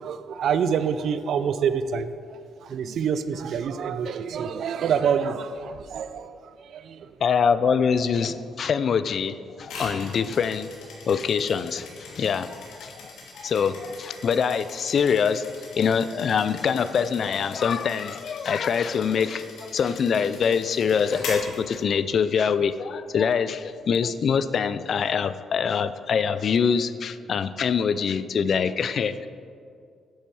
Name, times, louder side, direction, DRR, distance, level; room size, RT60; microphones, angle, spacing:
voice 1, 0.0-2.1 2.6-6.4 6.7-7.0, right 7 dB, 65° right, 12 dB, 0.5 m, -26 dB
voice 2, 7.2-10.7 11.1-15.5 15.8-29.1, left 6 dB, 55° left, 13 dB, 0.4 m, -24 dB
sound 1, 9.6-22.3, left 3 dB, 85° left, 2.6 m, -42 dB
10.0 x 7.3 x 4.8 m, 2.3 s
cardioid pair, 90°, 0 cm